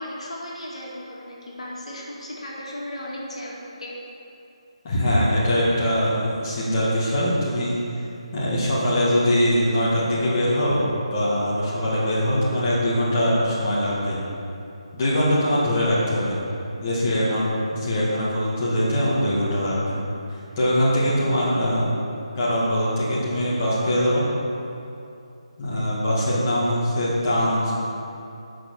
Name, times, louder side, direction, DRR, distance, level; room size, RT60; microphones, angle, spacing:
voice 1, 0.0-3.9, left 1 dB, 70° left, -4 dB, 2.3 m, -35 dB
voice 2, 4.8-7.8 8.3-14.2 14.9-16.4 16.8-20.0 20.6-21.9 22.3-24.2 25.6-27.7, equal, 25° left, -9 dB, 2.0 m, -22 dB
8.1 x 6.1 x 6.4 m, 2.7 s
hypercardioid pair, 170°, 3 cm